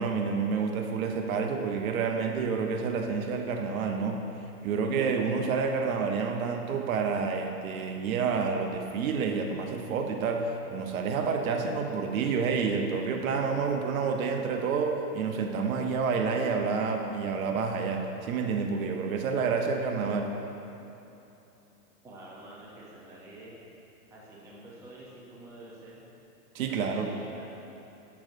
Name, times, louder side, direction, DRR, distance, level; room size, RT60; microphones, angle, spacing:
voice 1, 0.0-4.2 4.6-20.3 26.5-27.1, right 5 dB, 60° right, 3 dB, 0.8 m, -29 dB
voice 2, 22.0-23.6 24.1-26.0 26.7-27.6, right 2 dB, 5° right, -6 dB, 0.6 m, -48 dB
7.5 x 7.1 x 2.6 m, 2.9 s
hypercardioid pair, 135°, 47 cm